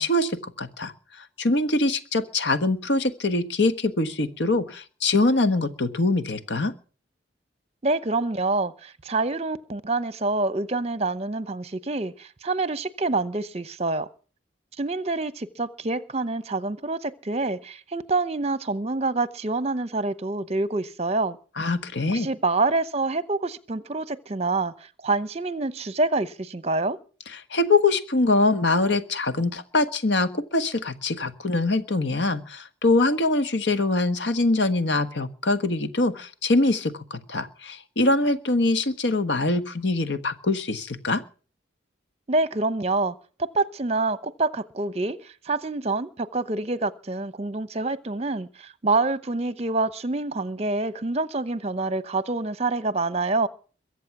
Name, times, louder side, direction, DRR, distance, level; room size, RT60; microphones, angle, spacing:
voice 1, 0.0-6.7 21.6-22.3 27.5-41.2, left 2 dB, 75° left, 1.4 m, -23 dB
voice 2, 7.8-14.1 14.8-21.4 22.1-27.0 42.3-53.5, right 3 dB, 35° right, 0.8 m, -27 dB
22.5 x 8.2 x 6.0 m
head